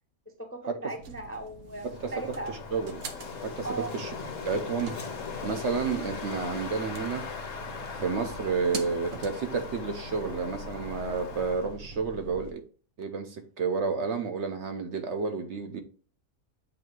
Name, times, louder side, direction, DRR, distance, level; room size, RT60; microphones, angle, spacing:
voice 1, 0.3-2.5 3.6-4.0, right 2 dB, 15° left, 0.6 m, -38 dB
sound 1, 1.0-12.5, right 3 dB, 85° right, 1.4 m, -44 dB
Wind, 1.9-11.8, left 6 dB, 65° left, 1.4 m, -40 dB
voice 2, 2.7-3.1 3.4-4.1 4.4-4.9 5.4-7.3 8.0-12.6 13.0-15.8, right 5 dB, 60° right, 1.0 m, -31 dB
7.6 x 2.7 x 4.5 m
omnidirectional pair, 1.5 m